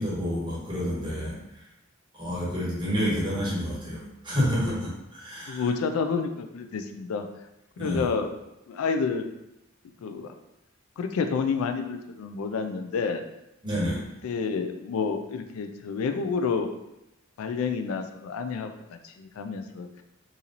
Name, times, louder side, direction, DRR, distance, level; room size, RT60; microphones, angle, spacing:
voice 1, 0.0-1.4 2.1-5.6 7.8-8.1 13.6-14.1, equal, 20° right, -6 dB, 1.1 m, -29 dB
voice 2, 5.5-7.3 7.8-8.3 8.7-9.3 10.0-10.3 11.0-13.2 14.2-16.8 17.4-19.9, left 5 dB, 85° left, 7 dB, 0.3 m, -29 dB
2.9 x 2.7 x 3.9 m, 0.89 s
head